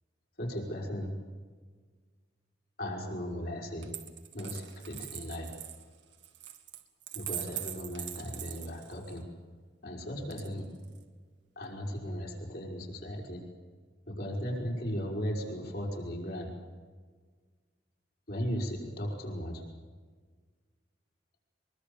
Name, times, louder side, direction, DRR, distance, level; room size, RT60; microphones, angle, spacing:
voice 1, 0.4-1.1 2.8-3.9 4.3-5.6 7.1-9.2 9.8-10.7 11.6-13.4 14.1-16.5 18.3-19.6, equal, 60° left, -1 dB, 5.5 m, -36 dB
Coin (dropping), 3.8-9.2 10.3-11.0, right 12 dB, 90° right, 2.1 m, -42 dB
23.5 x 23.0 x 7.0 m, 1.5 s
head